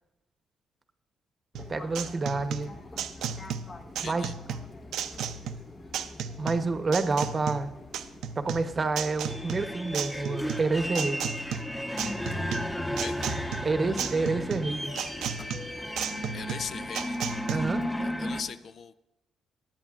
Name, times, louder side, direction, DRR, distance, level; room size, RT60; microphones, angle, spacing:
Fixed-wing aircraft airplane, 1.5-18.4, left 2 dB, 35° left, 1.1 m, -47 dB
sound 1, 1.6-17.6, right 8 dB, 85° right, 0.6 m, -35 dB
voice 1, 1.7-2.7 4.0-4.3 6.4-7.7 8.4-11.3 13.6-15.0 17.5-17.8, right 3 dB, 35° right, 9 dB, 0.9 m, -28 dB
voice 2, 4.0-4.3 13.0-13.2 16.3-17.7 18.0-18.9, left 6 dB, 60° left, 12 dB, 0.5 m, -39 dB
sound 2, 9.3-18.4, equal, 10° left, 1.0 m, -34 dB
18.0 x 10.5 x 2.5 m, 0.92 s
cardioid pair, 90°, 0 cm